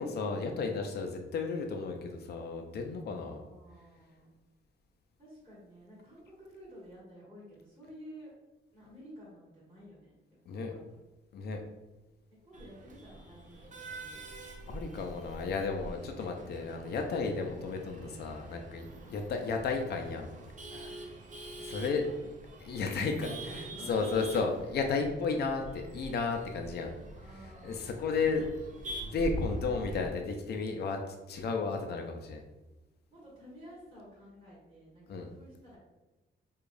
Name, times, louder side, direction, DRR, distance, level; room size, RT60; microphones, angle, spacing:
voice 1, 0.0-3.4 10.5-10.7 11.3-11.6 14.7-20.3 21.6-22.1 22.6-26.9 27.4-28.4 29.0-32.4 35.1-35.3, left 4 dB, 55° left, 3 dB, 0.5 m, -33 dB
voice 2, 3.1-4.3 5.2-8.3 8.7-10.2 10.5-10.8 12.4-14.2 14.6-15.0 19.0-19.3 21.6-21.8 22.2-22.6 22.9-24.2 27.1-28.5 33.1-35.8, equal, 25° right, -9 dB, 1.4 m, -52 dB
Male speech man speaking / Laughter / Chatter, 12.5-30.1, right 1 dB, 40° right, 0.5 m, -44 dB
4.7 x 2.3 x 2.5 m, 1.1 s
wide cardioid pair, 150°, 20 cm